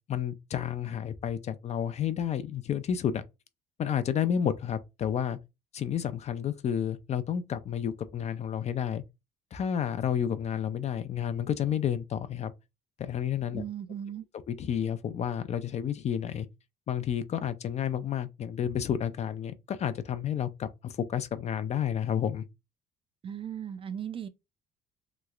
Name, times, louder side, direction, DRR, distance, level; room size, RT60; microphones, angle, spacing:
voice 1, 0.1-3.2 3.8-5.4 5.7-9.0 9.5-12.5 13.0-13.6 14.5-16.5 16.9-22.4, left 9 dB, 40° left, 0.4 m, -30 dB
voice 2, 13.5-14.3 23.2-24.3, right 9 dB, 30° right, 0.4 m, -37 dB
3.1 x 3.0 x 2.4 m
cardioid pair, 110°, 17 cm